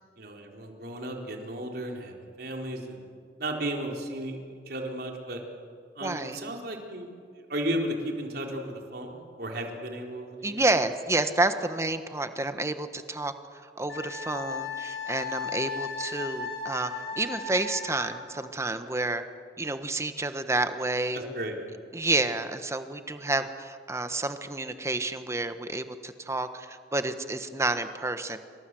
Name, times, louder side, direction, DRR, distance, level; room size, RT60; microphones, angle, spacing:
voice 1, 0.2-3.0 3.4-5.4 6.0-7.1 7.5-10.6 21.1-21.6, right 1 dB, 60° right, 1 dB, 4.3 m, -34 dB
voice 2, 6.0-6.4 10.4-13.3 13.6-16.9 17.2-19.2 19.6-21.2 21.9-28.4, right 2 dB, 15° right, 9 dB, 1.3 m, -29 dB
Wind instrument woodwind instrument, 13.9-18.2, left 5 dB, 85° left, 6.5 m, -36 dB
29.0 x 25.0 x 7.8 m, 2.2 s
head